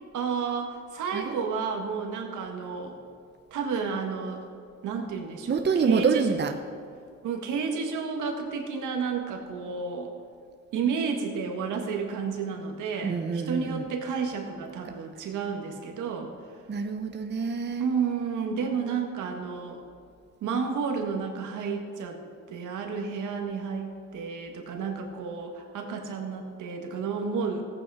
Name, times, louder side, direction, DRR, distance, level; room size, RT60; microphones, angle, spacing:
voice 1, 0.1-3.0 3.5-4.5 4.8-6.3 7.2-10.1 10.7-16.3 17.8-19.8 20.4-22.2 22.5-27.6, right 5 dB, 80° right, 3 dB, 1.7 m, -31 dB
voice 2, 5.5-6.6 13.0-13.9 16.7-17.9, right 5 dB, 35° right, 6 dB, 0.8 m, -26 dB
15.0 x 8.8 x 4.9 m, 2.3 s
cardioid pair, 90°, 30 cm